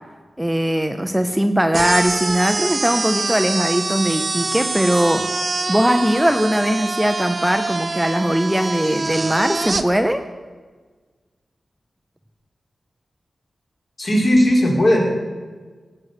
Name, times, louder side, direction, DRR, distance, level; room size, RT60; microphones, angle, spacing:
voice 1, 0.4-5.2 5.7-10.2, equal, 5° right, 7 dB, 0.6 m, -20 dB
sound 1, 1.7-9.8, right 3 dB, 35° right, 0.8 m, -25 dB
voice 2, 14.0-15.0, left 1 dB, 50° left, -1 dB, 3.9 m, -16 dB
18.0 x 8.7 x 6.8 m, 1.4 s
wide cardioid pair, 170°, 0 cm